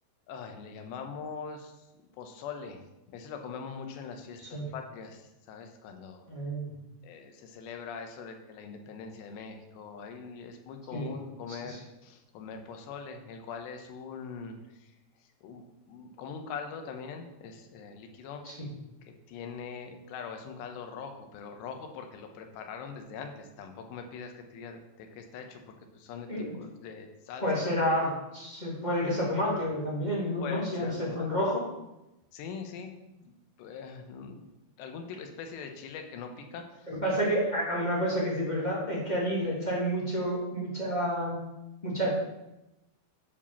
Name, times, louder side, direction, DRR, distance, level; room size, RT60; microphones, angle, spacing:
voice 1, 0.3-1.8 2.2-2.8 3.1-6.3 7.0-14.9 15.4-18.4 19.0-27.6 30.4-31.3 32.3-34.5 34.8-36.9, left 5 dB, 90° left, 5 dB, 3.2 m, -42 dB
voice 2, 6.3-6.7 10.9-11.1 11.6-11.8 18.4-18.7 26.3-26.5 27.4-31.7 36.9-41.4 41.8-42.2, equal, 20° left, -6 dB, 1.1 m, -29 dB
9.2 x 5.1 x 7.0 m, 0.95 s
omnidirectional pair, 4.8 m